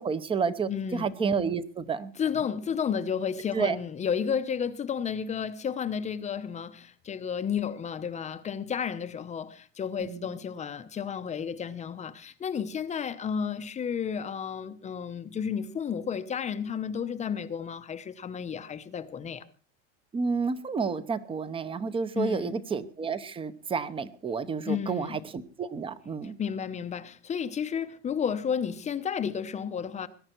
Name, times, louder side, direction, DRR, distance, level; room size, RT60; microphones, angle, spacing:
voice 1, 0.0-2.1 3.5-3.8 10.0-10.3 20.1-25.2 25.6-26.3, right 5 dB, 15° right, 0.9 m, -30 dB
voice 2, 0.7-1.1 2.2-19.4 22.1-22.6 24.6-25.2 26.4-30.1, left 7 dB, 20° left, 0.8 m, -32 dB
21.0 x 11.0 x 4.5 m
cardioid pair, 160°, 35 cm